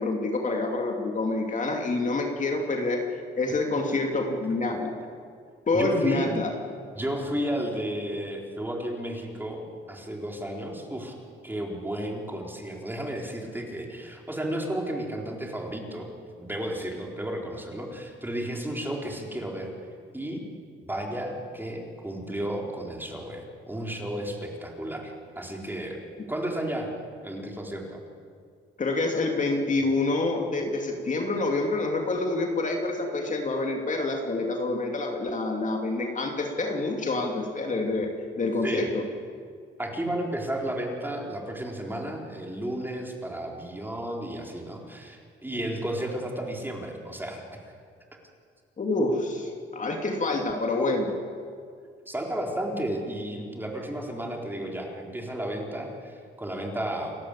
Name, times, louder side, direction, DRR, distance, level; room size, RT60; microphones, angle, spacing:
voice 1, 0.0-3.0 3.4-5.0 5.7-6.5 28.8-38.1 38.4-39.0 48.8-51.1, left 2 dB, 40° left, 2 dB, 2.8 m, -27 dB
voice 2, 5.7-6.3 7.0-11.2 11.4-16.1 16.4-19.7 20.1-20.4 20.8-26.0 26.3-26.9 27.2-28.0 38.6-38.9 39.8-47.4 52.1-57.2, right 1 dB, 10° right, 0 dB, 4.2 m, -33 dB
29.5 x 12.5 x 8.4 m, 2.2 s
cardioid pair, 90°, 20 cm